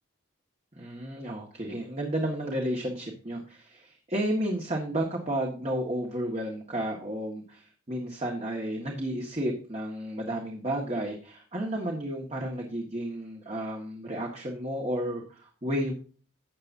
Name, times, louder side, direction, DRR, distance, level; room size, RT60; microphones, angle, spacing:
voice 1, 0.7-15.9, right 1 dB, 30° right, 0 dB, 1.7 m, -32 dB
13.5 x 8.9 x 2.7 m, 0.39 s
head